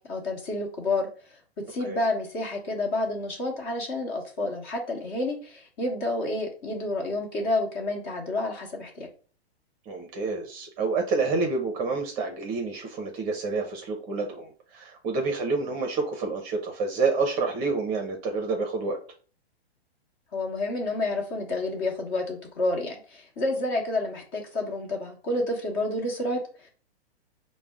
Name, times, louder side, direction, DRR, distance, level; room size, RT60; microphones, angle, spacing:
voice 1, 0.1-1.4 1.7-9.1 20.3-26.7, left 2 dB, 30° left, 1 dB, 1.2 m, -29 dB
voice 2, 9.9-19.0, right 4 dB, 25° right, 3 dB, 0.7 m, -28 dB
4.9 x 2.1 x 3.5 m, 0.40 s
hypercardioid pair, 140°, 32 cm